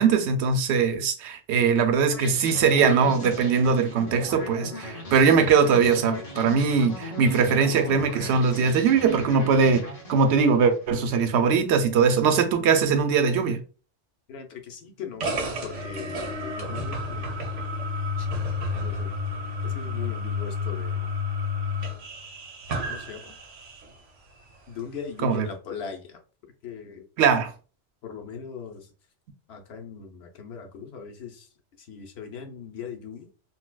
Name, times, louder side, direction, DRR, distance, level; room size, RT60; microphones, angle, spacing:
voice 1, 0.0-13.6 25.2-25.5 27.2-27.5, right 5 dB, 70° right, 0.8 m, -21 dB
sound 1, 2.1-11.2, left 1 dB, 35° left, 0.8 m, -38 dB
voice 2, 14.3-17.3 18.2-18.3 18.8-19.1 19.6-21.1 22.9-23.4 24.7-26.2 26.6-27.3 28.0-28.9 29.5-31.5 31.8-33.3, left 6 dB, 65° left, 0.9 m, -39 dB
sound 2, 15.2-23.9, left 3 dB, 90° right, 1.1 m, -31 dB
4.0 x 2.2 x 2.2 m
omnidirectional pair, 1.2 m